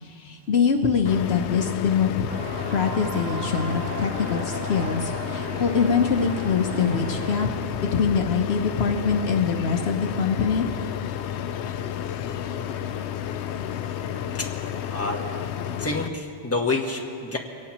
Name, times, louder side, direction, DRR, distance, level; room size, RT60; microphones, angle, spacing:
voice 1, 0.0-2.3 2.7-7.5 7.8-10.6, left 6 dB, 70° left, 4 dB, 1.1 m, -24 dB
sound 1, 1.1-16.1, left 9 dB, 90° left, 0.9 m, -31 dB
sound 2, 2.3-7.5, right 3 dB, 45° right, 0.9 m, -36 dB
voice 2, 14.9-15.2 15.8-17.4, left 3 dB, 15° left, 0 dB, 1.3 m, -27 dB
24.0 x 18.0 x 3.0 m, 2.5 s
omnidirectional pair, 1.1 m